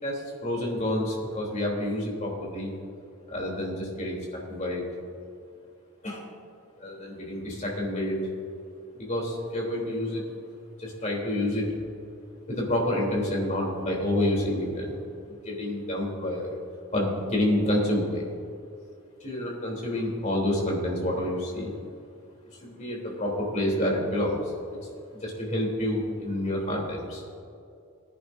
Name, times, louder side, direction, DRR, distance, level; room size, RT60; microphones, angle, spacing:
voice 1, 0.0-2.7 3.3-4.2 4.5-4.8 6.0-6.2 6.8-8.2 8.9-10.3 10.8-11.7 12.5-15.0 15.4-16.5 16.9-18.2 19.2-21.7 22.6-24.5 25.2-27.2, left 1 dB, 35° left, -2 dB, 3.3 m, -28 dB
19.0 x 10.5 x 2.7 m, 2.5 s
head